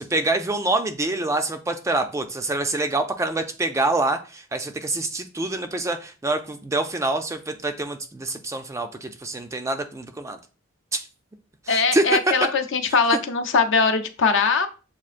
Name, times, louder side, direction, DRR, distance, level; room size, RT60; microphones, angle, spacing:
voice 1, 0.0-10.4 10.9-11.0 11.7-12.0, right 2 dB, 15° right, 7 dB, 0.3 m, -26 dB
voice 2, 11.7-14.7, left 4 dB, 60° left, 7 dB, 0.5 m, -21 dB
7.2 x 2.4 x 2.5 m, 0.35 s
head